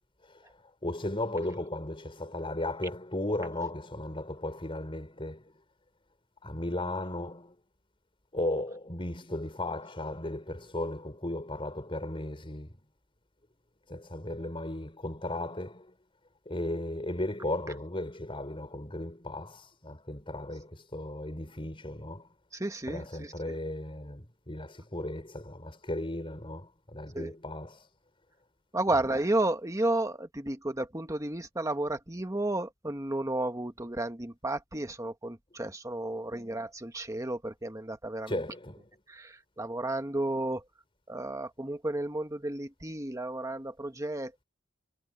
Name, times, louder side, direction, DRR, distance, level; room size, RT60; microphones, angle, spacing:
voice 1, 0.2-5.5 6.4-7.6 8.3-12.8 13.9-15.9 16.5-22.3 22.9-27.9 28.9-29.2 36.1-36.2 38.3-38.9, left 1 dB, 25° left, 5.5 m, -36 dB
voice 2, 22.5-23.6 27.1-27.3 28.7-38.4 39.1-40.6 41.1-44.4, right 2 dB, 15° right, 1.5 m, -32 dB
head